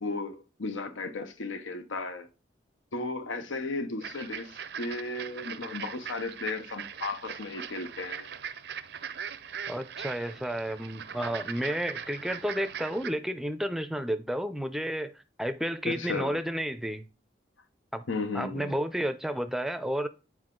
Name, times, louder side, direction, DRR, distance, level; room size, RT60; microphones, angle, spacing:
voice 1, 0.0-2.3 2.9-8.3 15.8-16.4 18.1-18.8, left 3 dB, 85° left, 0.8 m, -35 dB
sound 1, 4.0-13.1, right 7 dB, 60° right, 0.5 m, -40 dB
voice 2, 9.7-17.0 17.9-18.0 18.3-20.1, equal, ahead, 0.5 m, -31 dB
7.8 x 4.8 x 3.7 m
head